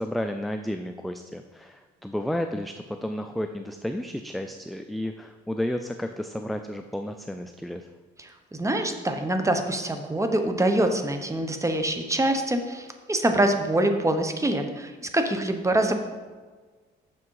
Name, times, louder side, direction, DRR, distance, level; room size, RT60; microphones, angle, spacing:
voice 1, 0.0-7.9, left 1 dB, ahead, 6 dB, 0.3 m, -32 dB
voice 2, 8.6-15.9, right 1 dB, 15° right, 6 dB, 0.9 m, -25 dB
6.7 x 6.1 x 4.7 m, 1.4 s
cardioid pair, 90°, 20 cm